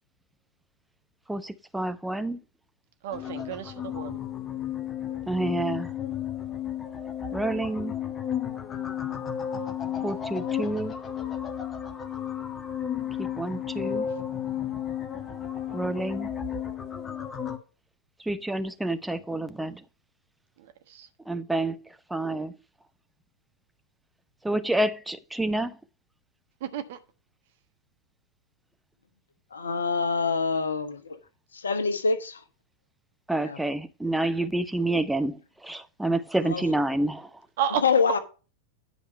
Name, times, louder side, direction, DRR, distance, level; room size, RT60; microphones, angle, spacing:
voice 1, 1.3-2.4 5.3-5.9 7.3-7.9 10.0-10.9 13.2-14.1 15.7-16.3 18.2-19.8 21.3-21.8 22.1-22.5 24.4-25.8 33.3-37.3, right 2 dB, 5° right, 0.8 m, -28 dB
voice 2, 3.0-4.2 20.9-21.1 26.6-27.0 37.6-37.8, right 9 dB, 55° right, 1.3 m, -31 dB
sound 1, 3.1-17.6, left 9 dB, 20° left, 1.3 m, -33 dB
voice 3, 29.5-31.2 31.5-32.4 33.4-33.6 36.4-36.6 37.7-38.2, left 4 dB, 70° left, 1.2 m, -26 dB
10.0 x 5.2 x 5.5 m
figure-of-eight pair, 90°, 0 cm